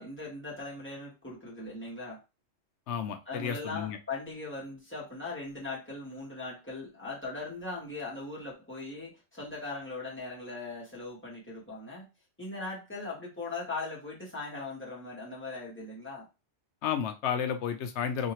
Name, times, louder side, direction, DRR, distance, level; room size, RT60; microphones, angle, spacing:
voice 1, 0.0-2.2 3.3-12.1 12.4-16.3, left 3 dB, 10° left, -6 dB, 1.3 m, -39 dB
voice 2, 2.9-4.0 16.8-18.3, left 8 dB, 75° left, 8 dB, 0.8 m, -32 dB
2.8 x 2.7 x 2.9 m, 0.28 s
omnidirectional pair, 1.2 m